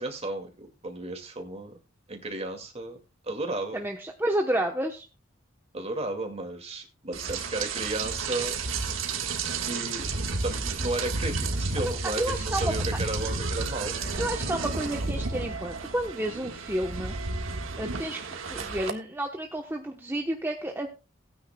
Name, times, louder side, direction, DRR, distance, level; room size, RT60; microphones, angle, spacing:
voice 1, 0.0-1.8 2.1-3.0 3.2-3.8 5.7-8.6 9.7-10.1 10.4-14.0, right 2 dB, 30° right, 4 dB, 2.2 m, -34 dB
voice 2, 3.7-5.0 11.8-12.7 14.2-17.2 17.8-20.9, right 1 dB, 10° right, 2 dB, 1.0 m, -31 dB
Rain, 7.1-18.9, right 3 dB, 80° right, 1.6 m, -31 dB
18.0 x 9.6 x 2.3 m, 0.29 s
head